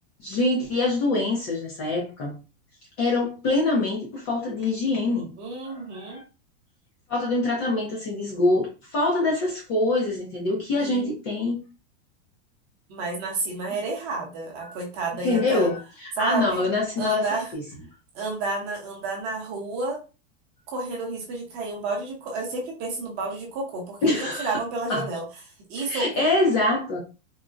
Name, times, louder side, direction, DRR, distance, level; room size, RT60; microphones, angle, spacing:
voice 1, 0.2-2.4 3.0-5.3 5.7-6.2 7.1-11.6 14.6-14.8 15.2-17.2 17.5-17.6 24.0-24.6 24.9-25.1 25.8-27.0, left 2 dB, 25° left, 0.5 m, -25 dB
voice 2, 5.4-6.2 10.8-11.1 12.9-15.7 16.2-16.7 17.0-17.5 18.1-20.0 20.7-25.3 25.7-26.1, right 3 dB, 25° right, 0.8 m, -30 dB
3.8 x 2.0 x 2.4 m
supercardioid pair, 175°, 37 cm